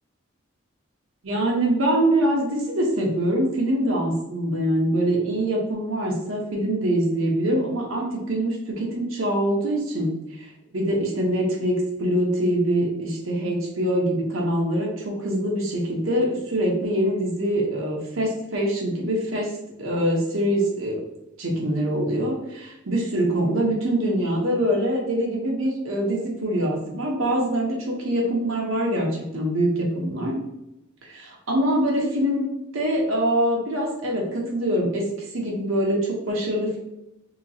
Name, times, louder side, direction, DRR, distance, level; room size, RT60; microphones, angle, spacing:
voice 1, 1.2-10.1 10.4-19.5 19.8-21.0 21.4-30.4 31.0-32.5 32.7-35.1 35.3-36.8, right 1 dB, 75° right, -1 dB, 0.9 m, -24 dB
3.3 x 2.9 x 2.7 m, 0.88 s
head